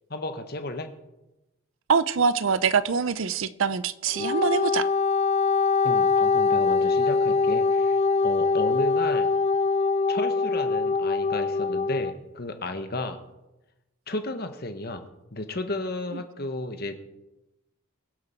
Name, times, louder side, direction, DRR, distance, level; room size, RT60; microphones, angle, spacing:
voice 1, 0.1-0.9 5.8-9.3 10.1-13.2 14.1-15.0 15.3-17.0, left 2 dB, 45° left, 7 dB, 1.2 m, -33 dB
voice 2, 1.9-4.9, right 5 dB, 70° right, 16 dB, 0.5 m, -24 dB
Wind instrument woodwind instrument, 4.1-12.1, left 4 dB, 30° left, 0.3 m, -23 dB
22.5 x 7.6 x 4.5 m, 0.98 s
head